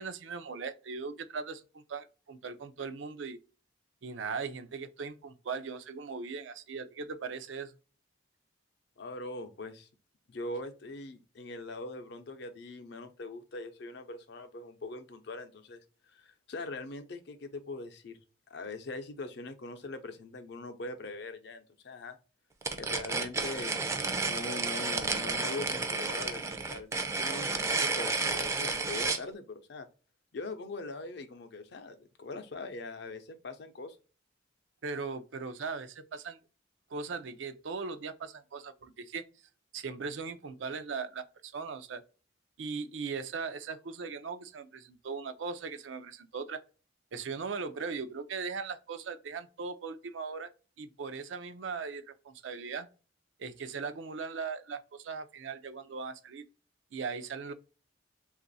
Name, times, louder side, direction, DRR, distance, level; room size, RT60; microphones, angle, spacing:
voice 1, 0.0-3.4 4.0-7.7 34.8-36.4 36.9-39.2 39.7-42.0 42.6-46.6 47.1-50.5 50.8-52.9 53.4-56.4 56.9-57.5, right 5 dB, 85° right, 0.5 m, -39 dB
voice 2, 9.0-9.9 10.3-15.8 16.1-18.2 18.5-22.2 22.7-26.9 27.2-29.9 30.3-34.0, left 2 dB, 65° left, 0.5 m, -42 dB
sound 1, 22.6-29.2, right 3 dB, 15° right, 0.4 m, -31 dB
3.0 x 2.4 x 3.9 m
head